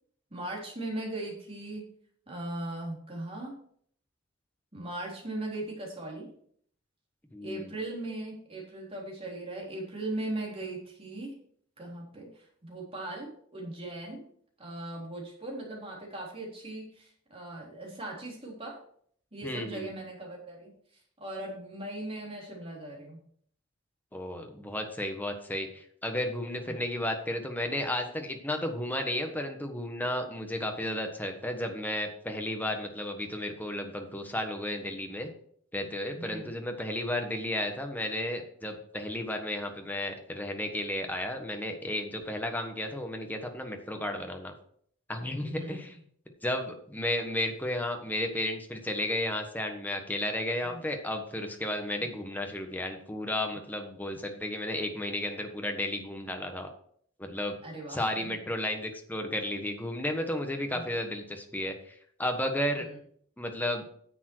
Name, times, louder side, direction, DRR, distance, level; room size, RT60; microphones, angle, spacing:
voice 1, 0.3-1.9 2.3-3.6 4.7-6.3 7.4-11.3 11.8-14.2 14.6-18.8 19.3-20.7 21.2-23.2 26.7-26.8 36.1-36.5 45.4-45.8 50.7-50.8 52.0-52.2 57.6-58.3 60.7-60.9 62.8-63.0, right 2 dB, 30° right, -3 dB, 3.6 m, -39 dB
voice 2, 7.3-7.7 19.4-19.9 24.1-35.3 35.7-44.5 45.1-46.0 46.4-56.7 57.2-57.6 57.9-62.8 63.4-63.8, left 1 dB, 10° left, 4 dB, 1.3 m, -33 dB
10.0 x 7.2 x 4.7 m, 0.62 s
head